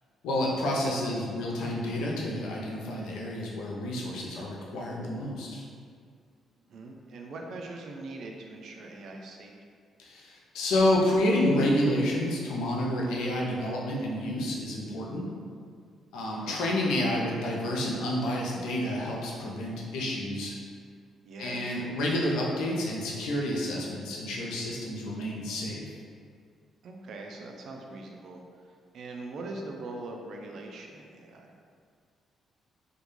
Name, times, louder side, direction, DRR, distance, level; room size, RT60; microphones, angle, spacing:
voice 1, 0.2-5.6 10.0-15.3 16.1-20.5 21.4-25.9, left 1 dB, 90° left, -3 dB, 0.5 m, -29 dB
voice 2, 6.7-9.5 16.3-16.6 21.2-21.6 26.8-31.6, right 2 dB, 65° right, 1 dB, 0.3 m, -42 dB
2.3 x 2.2 x 3.0 m, 2.1 s
cardioid pair, 90°, 0 cm